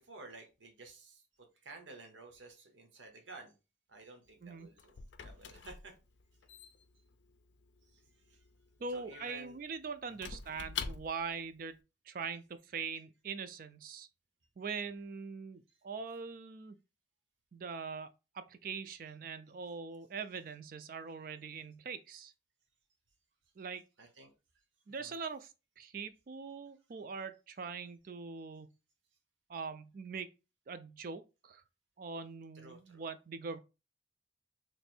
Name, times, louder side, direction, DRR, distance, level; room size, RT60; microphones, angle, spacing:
voice 1, 0.0-3.5 3.9-5.9 7.9-8.5 8.9-9.6 10.2-10.3 24.0-24.3 25.0-25.2 32.5-33.0, right 3 dB, 85° right, 1.0 m, -53 dB
Squeak / Wood, 4.3-11.4, left 6 dB, 75° left, 0.5 m, -47 dB
voice 2, 8.8-11.8 12.1-14.1 14.6-16.8 17.5-22.3 23.6-23.8 24.9-28.7 29.5-30.3 30.7-31.6 32.0-33.6, right 5 dB, 50° right, 0.4 m, -42 dB
3.1 x 2.6 x 4.3 m
head